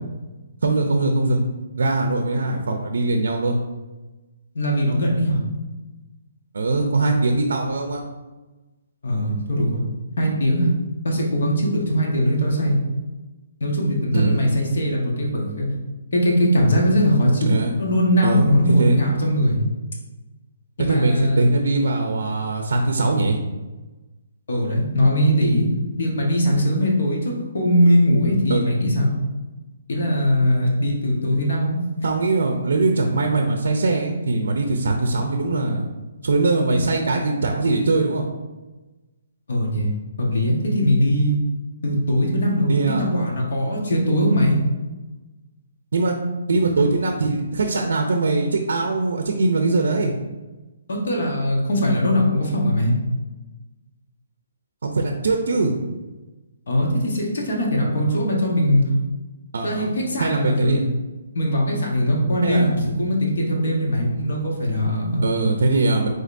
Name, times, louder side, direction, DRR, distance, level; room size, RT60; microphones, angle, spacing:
voice 1, 0.6-1.4 1.8-3.6 6.5-8.0 14.1-14.4 17.4-17.7 18.2-19.0 20.8-23.4 28.5-28.6 32.0-35.8 36.2-38.3 42.7-43.0 45.9-46.2 46.5-50.1 54.8-55.7 59.5-59.9 60.2-60.9 62.4-62.9 65.2-66.1, right 3 dB, 70° right, 4 dB, 0.5 m, -21 dB
voice 2, 4.5-5.4 9.0-9.8 10.2-10.7 11.0-12.8 13.6-15.7 16.1-17.5 17.8-19.6 20.8-21.4 24.5-25.7 26.0-29.1 29.9-31.8 39.5-39.9 40.2-41.4 41.8-44.6 50.9-52.9 56.7-58.8 59.6-60.8 61.3-65.2, equal, 60° left, -2 dB, 1.3 m, -20 dB
5.1 x 3.9 x 2.6 m, 1.2 s
hypercardioid pair, 175°, 0 cm